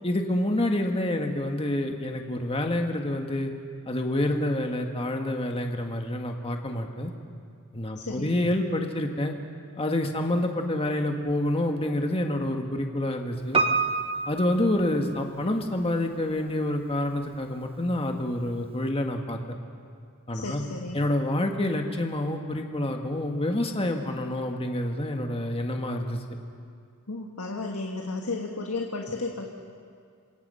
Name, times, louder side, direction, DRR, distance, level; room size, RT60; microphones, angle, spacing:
voice 1, 0.0-3.5 3.9-7.1 7.7-9.4 9.8-13.6 14.3-19.6 20.3-20.6 20.9-26.2, left 1 dB, 25° left, 3 dB, 1.6 m, -28 dB
voice 2, 8.0-8.3 20.3-21.0 27.1-29.5, left 3 dB, 75° left, 2 dB, 1.7 m, -33 dB
Piano, 13.5-15.6 15.9-16.0, right 4 dB, 25° right, 1.0 m, -27 dB
28.0 x 24.0 x 5.6 m, 2.3 s
head